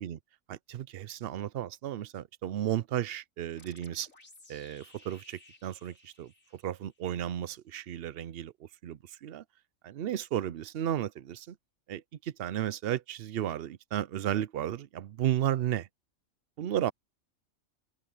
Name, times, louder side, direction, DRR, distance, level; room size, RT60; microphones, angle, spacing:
voice 1, 0.5-4.1 4.5-9.4 9.8-11.6 11.9-15.9 16.6-16.9, right 11 dB, 60° right, 0.6 m, -34 dB
sound 1, 3.6-7.1, left 2 dB, 65° left, 4.3 m, -58 dB
omnidirectional pair, 1.5 m